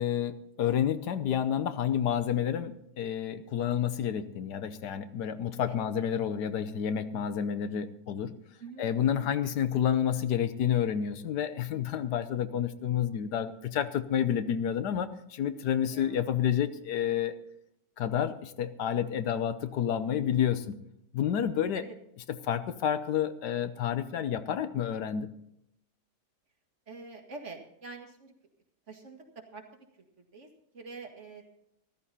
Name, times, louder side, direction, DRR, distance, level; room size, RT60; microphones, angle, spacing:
voice 1, 0.0-8.3 8.8-17.3 18.0-20.8 21.1-21.8 22.3-25.3, left 9 dB, 80° left, 12 dB, 1.4 m, -29 dB
voice 2, 8.6-9.4 15.6-16.2 21.7-21.9 26.9-28.3 28.9-29.2 29.5-29.9 30.2-30.5 30.7-31.5, right 4 dB, 45° right, 3 dB, 2.1 m, -46 dB
14.0 x 13.5 x 4.2 m, 0.76 s
omnidirectional pair, 1.8 m